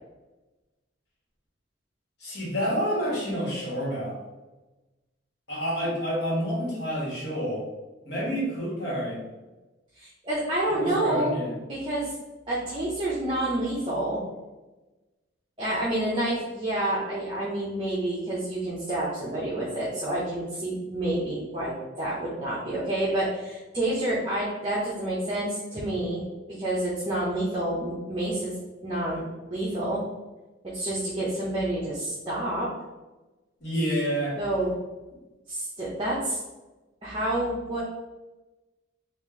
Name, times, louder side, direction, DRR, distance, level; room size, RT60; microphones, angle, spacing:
voice 1, 2.2-4.2 5.5-7.6 8.0-9.2 10.8-11.5 33.6-34.4, equal, 55° left, -6 dB, 1.4 m, -28 dB
voice 2, 10.0-11.3 11.7-12.1 12.5-14.2 15.6-26.2 26.5-28.6 28.8-29.2 29.5-30.0 30.6-32.7 34.4-34.7 35.5-36.4 37.0-37.8, right 1 dB, 25° right, -7 dB, 0.7 m, -28 dB
3.0 x 2.5 x 3.7 m, 1.1 s
head